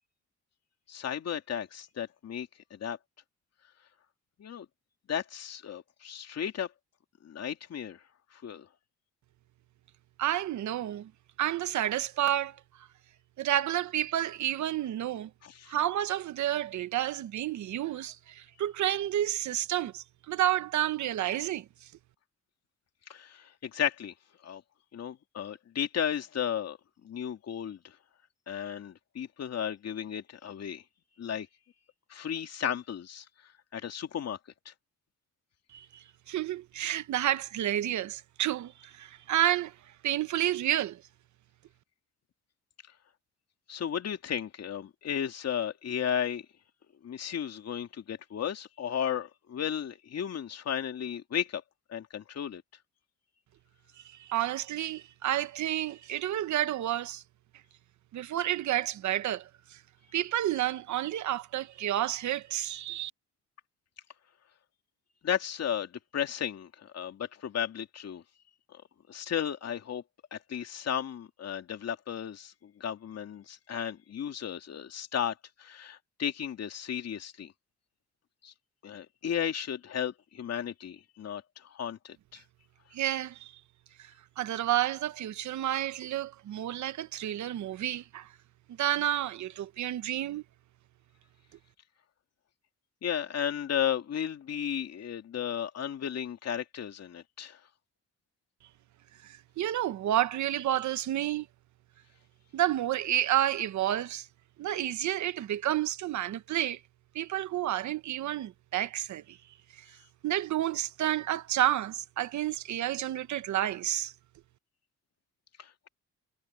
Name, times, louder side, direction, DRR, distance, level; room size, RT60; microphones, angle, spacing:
voice 1, 0.9-3.0 4.4-4.7 5.1-6.7 7.2-8.0 8.3-8.7 15.4-15.8 23.1-24.1 24.4-24.6 24.9-26.8 27.0-27.9 28.5-30.8 31.2-31.5 32.1-33.2 33.7-34.4 34.7-34.8 43.7-46.5 47.0-51.6 51.9-52.6 65.2-68.2 68.7-68.8 69.1-70.0 70.3-77.5 78.4-78.5 78.8-82.4 93.0-97.6 115.6-115.9, left 9 dB, 55° left, 2.6 m, -34 dB
voice 2, 10.2-11.1 11.4-12.9 13.4-15.3 15.7-21.9 35.7-39.7 40.0-41.0 54.0-57.2 58.1-59.8 60.1-63.1 82.9-83.5 84.0-88.3 88.8-90.4 99.2-101.5 102.5-104.3 104.6-106.8 107.1-109.4 109.7-110.0 110.2-114.1, right 12 dB, 70° right, 1.1 m, -30 dB
cardioid pair, 90°, 30 cm